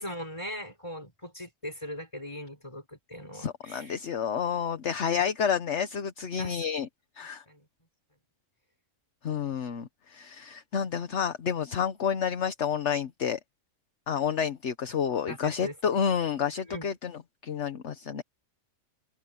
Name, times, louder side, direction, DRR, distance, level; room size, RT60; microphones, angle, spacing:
voice 1, 0.0-4.0 6.4-6.6 7.5-7.7 15.3-16.0 16.7-16.9, equal, 20° left, 5.1 m, -40 dB
voice 2, 3.3-6.9 7.2-7.4 9.2-13.4 14.1-17.1 17.4-18.2, left 7 dB, 60° left, 1.3 m, -29 dB
omnidirectional pair, 1.4 m